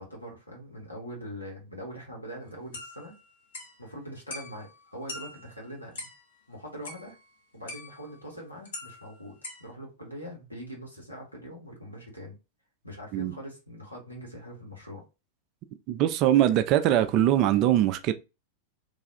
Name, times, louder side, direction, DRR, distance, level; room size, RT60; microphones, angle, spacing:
voice 1, 0.0-3.2 3.8-6.1 6.5-7.2 7.5-12.4 12.8-15.0, equal, 85° left, 1.3 m, -42 dB
sound 1, 2.7-3.8 4.3-4.8 5.1-6.2 6.8-7.3 7.7-8.1 8.6-9.7, left 2 dB, 60° left, 0.9 m, -42 dB
voice 2, 15.9-18.1, right 12 dB, 40° right, 0.3 m, -22 dB
3.3 x 2.3 x 2.7 m
figure-of-eight pair, 90°, 0 cm